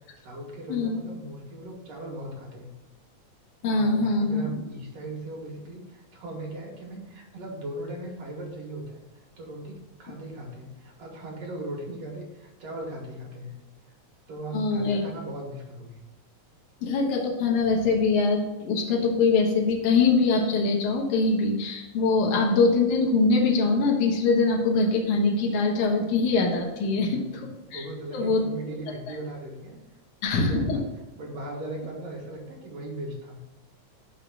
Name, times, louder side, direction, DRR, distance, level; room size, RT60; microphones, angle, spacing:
voice 1, 0.2-2.7 3.7-13.5 14.3-16.0 26.9-27.5 27.7-29.8 30.4-30.8 31.1-33.4, right 1 dB, 60° right, -1 dB, 2.4 m, -38 dB
voice 2, 3.6-4.5 14.5-15.0 16.8-27.2 27.7-27.8 28.1-28.4 30.2-30.8, left 3 dB, 75° left, -1 dB, 2.6 m, -23 dB
6.1 x 5.6 x 4.8 m, 1.1 s
omnidirectional pair, 3.5 m